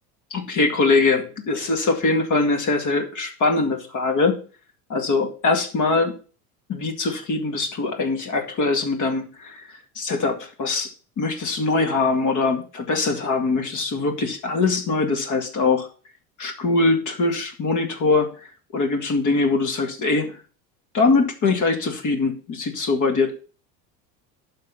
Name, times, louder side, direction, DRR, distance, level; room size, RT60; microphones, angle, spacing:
voice 1, 0.3-4.4 4.9-6.1 6.7-10.9 11.2-15.9 16.4-18.3 18.7-20.4 20.9-23.3, left 3 dB, 45° left, 5 dB, 2.1 m, -22 dB
11.5 x 4.1 x 5.9 m, 0.37 s
hypercardioid pair, 75°, 44 cm